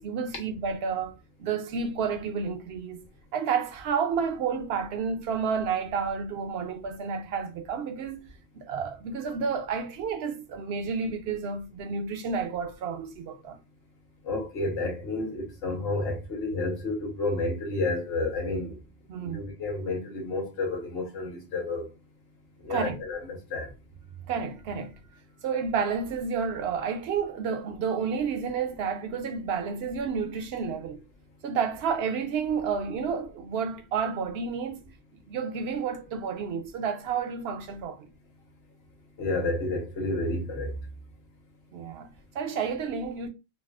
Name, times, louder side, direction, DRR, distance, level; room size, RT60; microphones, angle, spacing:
voice 1, 0.0-3.0 3.3-8.3 8.5-13.6 19.1-19.4 22.7-23.0 24.3-24.9 25.4-31.0 31.4-34.9 35.3-38.1 41.7-43.3, right 6 dB, 70° right, 0.8 m, -30 dB
voice 2, 14.2-18.8 19.2-21.9 22.6-23.7 39.2-40.7, left 2 dB, 65° left, 1.2 m, -30 dB
4.1 x 2.0 x 2.3 m
omnidirectional pair, 1.1 m